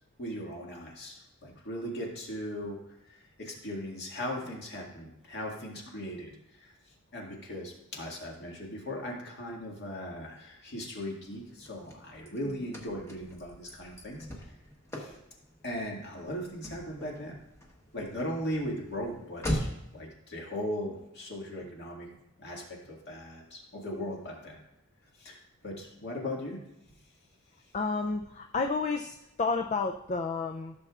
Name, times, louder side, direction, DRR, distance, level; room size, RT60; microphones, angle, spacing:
voice 1, 0.2-2.8 3.1-6.3 6.6-6.7 7.1-14.5 14.9-15.1 15.6-17.4 17.9-22.1 22.4-24.6 25.2-25.4 25.6-26.6, equal, 50° left, -1 dB, 2.0 m, -38 dB
Car / Slam, 11.3-20.0, equal, 15° left, 1.1 m, -40 dB
voice 2, 27.7-30.7, left 4 dB, 35° left, 4 dB, 0.4 m, -31 dB
14.5 x 6.7 x 2.4 m, 0.89 s
head